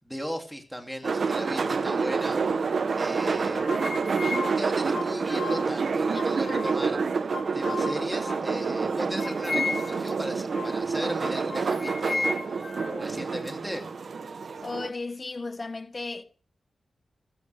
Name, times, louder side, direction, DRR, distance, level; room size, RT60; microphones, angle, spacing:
voice 1, 0.0-2.4 2.9-3.7 4.4-7.0 7.5-12.3 13.0-13.8, equal, 5° right, 2.7 m, -36 dB
sound 1, 1.0-14.9, right 5 dB, 60° right, 0.8 m, -28 dB
sound 2, 3.2-5.7 6.1-7.0 7.3-8.7 9.2-10.1 10.5-10.8 11.2-13.1, left 3 dB, 50° left, 3.1 m, -34 dB
voice 2, 14.6-16.2, left 3 dB, 35° left, 1.5 m, -34 dB
14.5 x 14.5 x 3.4 m
wide cardioid pair, 95°, 0 cm